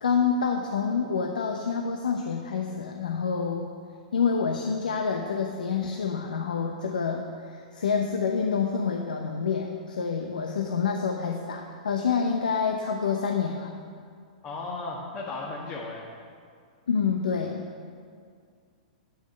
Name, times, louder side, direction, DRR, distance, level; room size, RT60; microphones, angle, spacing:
voice 1, 0.0-3.7 4.1-13.7 16.9-17.6, left 6 dB, 90° left, 2 dB, 0.8 m, -27 dB
voice 2, 14.4-16.1, left 3 dB, 30° left, -3 dB, 1.5 m, -35 dB
9.4 x 8.9 x 5.3 m, 2.1 s
hypercardioid pair, 130°, 4 cm